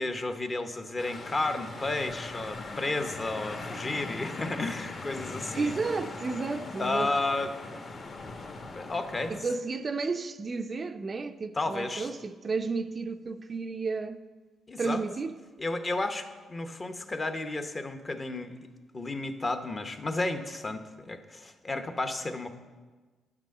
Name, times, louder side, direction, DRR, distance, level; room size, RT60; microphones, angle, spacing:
voice 1, 0.0-5.7 6.8-7.5 8.7-9.3 11.5-12.1 14.7-15.0 15.6-22.5, left 2 dB, 30° left, 0.9 m, -32 dB
sound 1, 1.0-9.4, left 3 dB, 45° left, 1.4 m, -40 dB
voice 2, 5.6-7.1 9.3-14.2 14.8-15.3, right 4 dB, 35° right, 0.5 m, -32 dB
9.4 x 6.0 x 7.7 m
cardioid pair, 90°, 0 cm